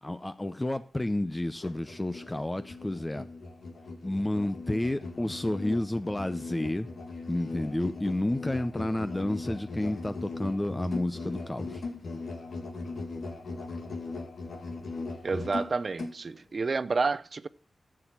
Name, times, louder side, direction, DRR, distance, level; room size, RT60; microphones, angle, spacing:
voice 1, 0.0-3.3 4.0-6.9 7.3-11.8, left 1 dB, 20° left, 0.7 m, -30 dB
Musical instrument, 1.5-16.2, left 3 dB, 70° left, 2.0 m, -39 dB
voice 2, 15.2-17.5, right 4 dB, 50° right, 0.6 m, -29 dB
11.5 x 7.0 x 6.0 m
cardioid pair, 65°, 0 cm